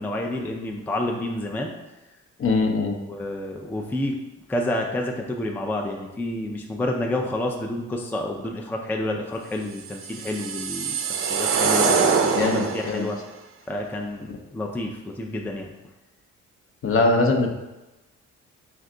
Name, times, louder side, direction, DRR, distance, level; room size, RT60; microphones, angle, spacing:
voice 1, 0.0-1.7 3.1-4.2 4.5-13.2 13.7-15.7, left 1 dB, 5° left, 1 dB, 0.3 m, -29 dB
voice 2, 2.4-3.0 12.4-13.1 16.8-17.5, left 3 dB, 45° left, 3 dB, 0.7 m, -21 dB
sound 1, 9.9-13.1, right 5 dB, 45° right, 0.5 m, -23 dB
4.5 x 2.3 x 3.7 m, 1.1 s
cardioid pair, 90°, 30 cm